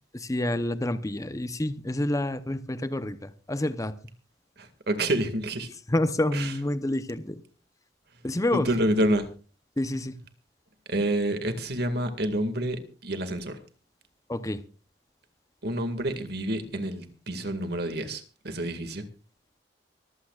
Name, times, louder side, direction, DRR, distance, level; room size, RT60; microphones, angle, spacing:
voice 1, 0.1-3.9 5.9-7.4 8.2-8.7 9.8-10.2 14.3-14.6, left 1 dB, 20° left, 0.8 m, -28 dB
voice 2, 4.6-5.7 6.3-6.5 8.5-9.3 10.9-13.6 15.6-19.0, right 1 dB, 60° right, 2.1 m, -28 dB
24.5 x 15.0 x 2.4 m
head